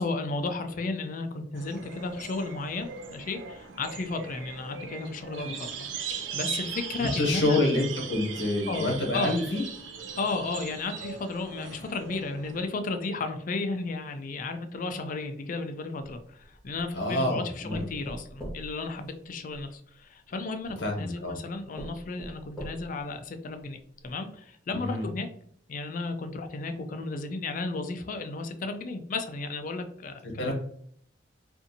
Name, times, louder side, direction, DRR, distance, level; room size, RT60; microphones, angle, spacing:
voice 1, 0.0-5.9 6.1-7.6 8.7-9.3 10.2-25.3 25.7-30.5, left 3 dB, 45° left, 7 dB, 0.4 m, -34 dB
sound 1, 1.5-12.6, right 6 dB, 85° right, 0.5 m, -39 dB
voice 2, 7.0-9.6 16.9-17.9 20.8-21.3 24.7-25.0 30.4-30.5, left 2 dB, 75° left, 0 dB, 1.0 m, -27 dB
sound 2, 16.1-16.9 17.7-19.7 20.6-20.7 21.3-21.4 21.8-23.1 23.6-23.7 24.0-24.1, right 1 dB, 5° left, 1.1 m, -42 dB
2.6 x 2.5 x 2.6 m, 0.62 s
head